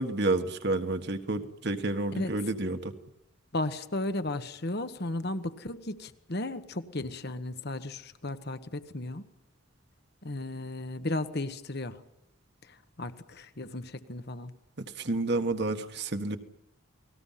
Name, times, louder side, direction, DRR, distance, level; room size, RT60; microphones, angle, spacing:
voice 1, 0.0-2.9 14.8-16.4, right 2 dB, 50° right, 7 dB, 1.6 m, -30 dB
voice 2, 3.5-9.2 10.2-12.0 12.6-14.5, left 2 dB, 50° left, 11 dB, 1.3 m, -35 dB
30.0 x 20.0 x 5.8 m, 0.84 s
head